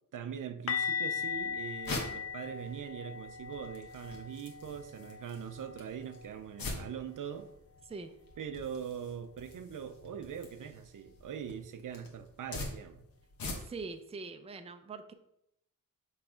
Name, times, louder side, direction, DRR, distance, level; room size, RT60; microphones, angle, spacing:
voice 1, 0.1-7.5 8.4-13.0, right 8 dB, 60° right, 0.6 m, -42 dB
sound 1, 0.7-6.5 6.7-7.0 7.3-7.5 10.7-10.8, left 6 dB, 40° left, 0.5 m, -39 dB
sound 2, 1.2-14.0, left 3 dB, 70° left, 1.5 m, -45 dB
voice 2, 13.7-15.1, right 4 dB, 15° right, 0.5 m, -43 dB
6.0 x 3.2 x 4.9 m
cardioid pair, 90°, 36 cm